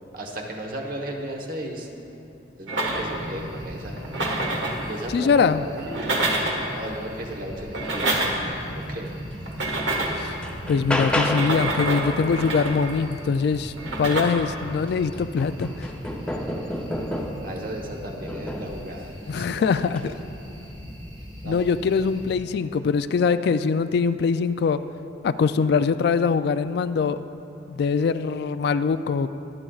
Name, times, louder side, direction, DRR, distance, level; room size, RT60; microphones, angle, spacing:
voice 1, 0.1-1.9 2.6-4.0 4.8-5.3 5.6-6.2 6.7-8.4 8.7-9.1 17.4-20.1 21.4-21.6, right 1 dB, 50° right, 1 dB, 1.1 m, -35 dB
sound 1, 2.7-3.3 4.0-4.9 5.8-6.7 7.6-8.5 9.5-10.3 11.2-12.9 13.8-14.2, right 2 dB, 65° right, 1.4 m, -27 dB
sound 2, 2.9-22.4, equal, 20° right, 1.0 m, -39 dB
voice 2, 5.1-5.6 10.2-10.4 10.7-15.9 19.3-20.2 21.4-24.8 25.2-27.2 27.7-29.3, left 5 dB, 60° left, 12 dB, 0.3 m, -23 dB
sound 3, 9.3-9.4 9.9-11.7 14.1-14.2 14.6-17.6 18.3-18.8 19.8-20.1, left 1 dB, 5° left, 0.6 m, -30 dB
23.0 x 8.8 x 2.4 m, 2.8 s
head